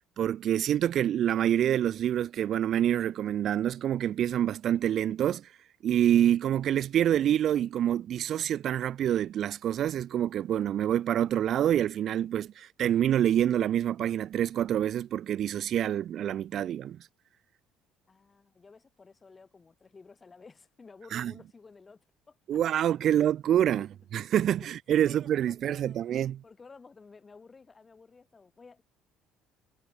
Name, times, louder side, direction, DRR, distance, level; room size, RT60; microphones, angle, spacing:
voice 1, 0.2-5.5 5.8-17.0 21.1-21.3 22.5-23.9 24.1-26.4, right 10 dB, 55° right, 0.8 m, -26 dB
voice 2, 18.1-22.6 24.5-26.2 26.4-28.8, left 4 dB, 25° left, 4.3 m, -54 dB
supercardioid pair, 95°, 0 cm